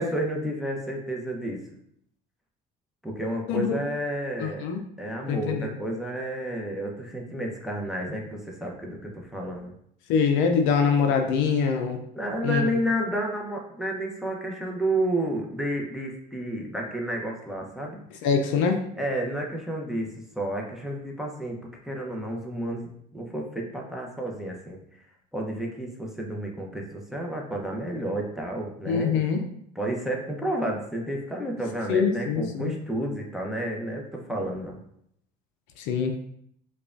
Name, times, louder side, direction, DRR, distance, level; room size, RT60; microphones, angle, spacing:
voice 1, 0.0-1.6 3.0-4.7 5.0-9.7 12.1-18.0 19.0-20.1 20.3-21.6 21.8-24.8 25.3-29.3 29.7-34.8, right 1 dB, ahead, -1 dB, 0.7 m, -31 dB
voice 2, 4.4-4.8 5.3-5.7 10.1-12.0 12.4-12.6 18.2-18.8 28.8-29.4 31.9-32.7 35.8-36.2, left 6 dB, 70° left, 5 dB, 0.5 m, -24 dB
4.8 x 2.4 x 2.5 m, 0.70 s
supercardioid pair, 75°, 21 cm